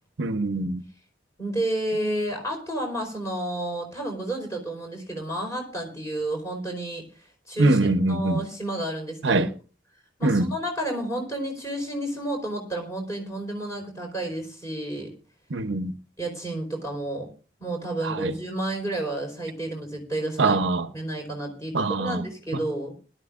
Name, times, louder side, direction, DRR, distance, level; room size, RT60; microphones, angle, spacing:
voice 1, 0.2-0.8 7.6-8.4 9.2-9.5 10.2-10.6 15.5-15.9 18.0-18.3 20.4-20.9 21.7-22.3 22.5-22.6, right 2 dB, 85° right, 0.8 m, -23 dB
voice 2, 1.4-7.0 7.5-7.8 8.1-9.5 10.2-15.1 16.2-17.3 17.6-20.6 20.9-22.9, right 1 dB, 15° left, 4.6 m, -31 dB
21.0 x 12.5 x 2.5 m
head